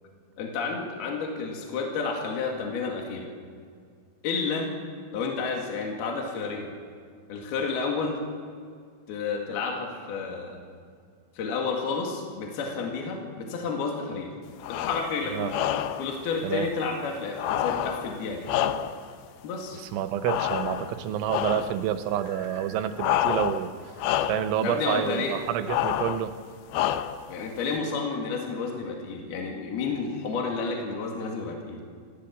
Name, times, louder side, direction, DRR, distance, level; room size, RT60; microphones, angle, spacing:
voice 1, 0.4-3.3 4.2-4.7 5.1-6.7 7.3-8.2 9.1-10.6 11.4-14.3 14.7-15.6 16.0-18.5 19.4-19.8 24.6-25.4 27.3-31.8, left 4 dB, 60° left, 1 dB, 3.8 m, -30 dB
sound 1, 14.6-15.1 15.5-16.1 17.4-19.1 20.2-21.0 21.3-21.8 23.0-23.7 24.0-24.5 25.7-26.3 26.7-27.3, left 11 dB, 90° left, 2.1 m, -28 dB
voice 2, 19.8-23.7 24.3-26.3, right 10 dB, 85° right, 9 dB, 3.4 m, -28 dB
sound 2, 20.2-20.7 22.0-22.8, right 2 dB, 35° right, 3.4 m, -49 dB
28.0 x 14.5 x 7.6 m, 2.1 s
omnidirectional pair, 5.4 m